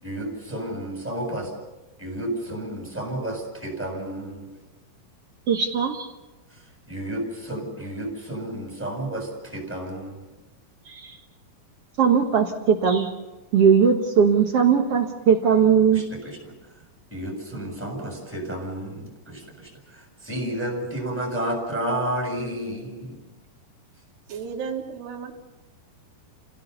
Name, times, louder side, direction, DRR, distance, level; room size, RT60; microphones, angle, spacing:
voice 1, 0.0-1.5 2.0-4.5 6.5-6.6 6.9-10.3 15.9-16.5 17.1-23.2, right 1 dB, 5° right, 0 dB, 7.1 m, -31 dB
voice 2, 5.5-6.1 10.9-11.2 12.0-13.1 13.5-16.0, right 7 dB, 65° right, 4 dB, 1.5 m, -19 dB
voice 3, 24.3-25.4, right 6 dB, 85° right, 3 dB, 4.3 m, -33 dB
29.5 x 17.0 x 7.0 m, 1.1 s
omnidirectional pair, 4.6 m